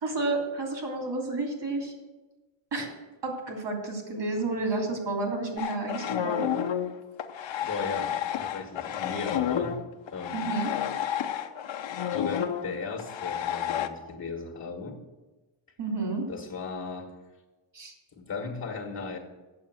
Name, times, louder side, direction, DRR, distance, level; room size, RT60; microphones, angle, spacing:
voice 1, 0.0-1.9 2.7-2.9 3.2-6.4 10.3-10.7 15.8-16.2 17.7-17.9, right 3 dB, 60° right, 0 dB, 3.1 m, -31 dB
sound 1, 5.6-13.9, left 10 dB, 65° left, 0.8 m, -31 dB
voice 2, 7.6-9.8 10.1-10.5 12.1-15.0 16.3-17.1 18.1-19.2, left 4 dB, 35° left, 1 dB, 1.6 m, -36 dB
8.5 x 7.2 x 7.6 m, 1.2 s
wide cardioid pair, 130°, 49 cm